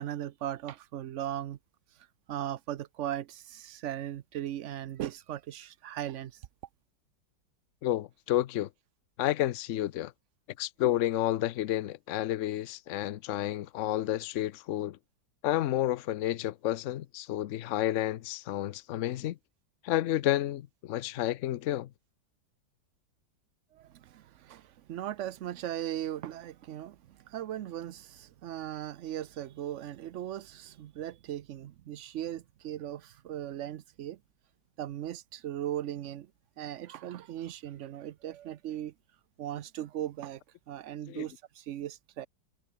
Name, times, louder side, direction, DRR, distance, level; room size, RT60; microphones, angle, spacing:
voice 1, 0.0-1.6 2.3-6.4 23.7-34.2 34.8-36.3 36.6-38.9 39.4-40.4 40.7-42.3, right 12 dB, 90° right, 0.6 m, -38 dB
voice 2, 7.8-8.7 9.2-10.1 10.6-15.0 15.4-19.4 19.8-21.9 41.1-41.2, left 13 dB, 85° left, 0.6 m, -30 dB
omnidirectional pair, 2.0 m